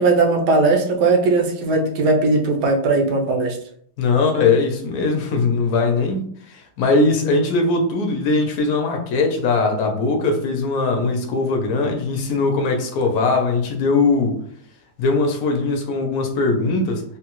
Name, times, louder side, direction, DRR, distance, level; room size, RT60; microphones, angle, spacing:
voice 1, 0.0-3.6, right 3 dB, 70° right, 2 dB, 1.2 m, -18 dB
voice 2, 4.0-14.4 15.0-17.0, left 3 dB, 65° left, 3 dB, 1.1 m, -20 dB
3.7 x 2.3 x 2.9 m, 0.62 s
omnidirectional pair, 1.9 m